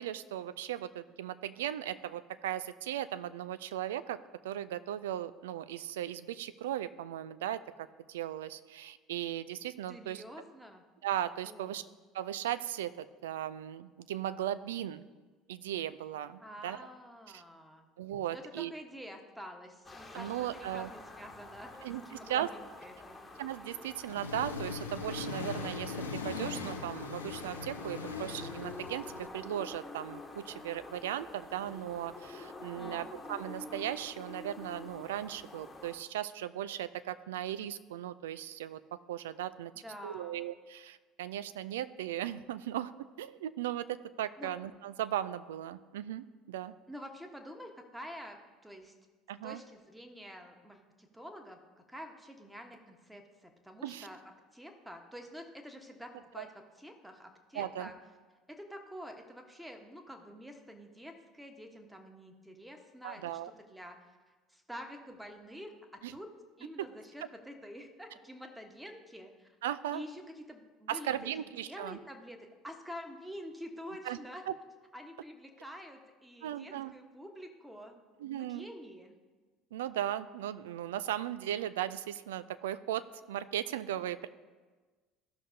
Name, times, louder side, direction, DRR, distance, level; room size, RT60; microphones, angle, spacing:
voice 1, 0.0-4.2 4.4-10.2 11.0-11.9 12.1-15.0 15.5-16.8 17.3-17.4 18.0-18.7 20.1-20.9 21.8-22.0 22.3-22.5 23.4-26.0 26.2-39.7 40.0-42.9 43.2-46.7 49.3-49.6 53.8-54.1 56.4-56.5 57.5-57.9 63.0-63.5 66.0-66.1 66.8-66.9 69.6-70.0 70.9-72.0 74.1-74.2 74.5-74.6 76.4-76.9 78.2-78.7 79.7-84.3, right 11 dB, 70° right, 14 dB, 0.3 m, -37 dB
voice 2, 9.9-10.8 11.4-11.8 16.4-17.9 18.3-23.2 32.6-33.1 39.7-40.4 44.4-44.5 46.9-48.9 49.4-51.6 51.9-54.2 54.5-58.0 58.5-64.2 64.5-66.3 66.6-69.5 69.9-74.4 74.9-78.0 78.3-79.1, equal, 5° right, 4 dB, 1.2 m, -48 dB
sound 1, 19.8-36.0, left 2 dB, 15° left, 1.2 m, -47 dB
Accelerating revving vroom, 24.0-29.3, left 4 dB, 80° left, 0.6 m, -40 dB
15.5 x 6.0 x 2.7 m, 1.3 s
figure-of-eight pair, 65°, 0 cm